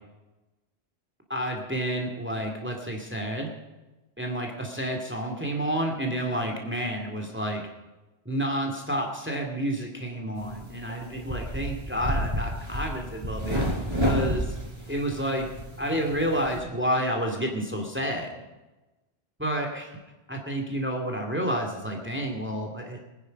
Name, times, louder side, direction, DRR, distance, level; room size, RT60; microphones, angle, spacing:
voice 1, 1.3-3.5 4.2-7.6 8.3-13.6 14.0-14.6 14.9-15.5 15.8-18.3 19.4-20.0 20.3-23.0, equal, 10° right, 3 dB, 2.4 m, -30 dB
sound 1, 10.4-16.6, equal, 25° right, 4.2 m, -31 dB
24.0 x 10.5 x 5.3 m, 1.1 s
omnidirectional pair, 1.1 m